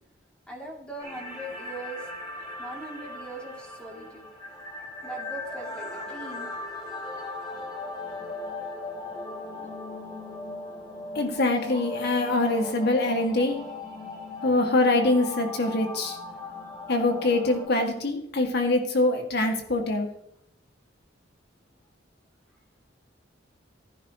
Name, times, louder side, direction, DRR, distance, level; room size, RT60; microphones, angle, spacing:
voice 1, 0.5-2.0 2.4-4.3 5.0-6.5 9.5-9.7 14.4-14.5, right 1 dB, 5° left, -2 dB, 2.9 m, -41 dB
sound 1, 1.0-17.7, left 2 dB, 25° left, 3.8 m, -38 dB
voice 2, 11.2-13.6 14.4-16.2 16.9-20.1, left 2 dB, 60° left, 3 dB, 2.2 m, -24 dB
15.5 x 10.0 x 3.1 m, 0.75 s
head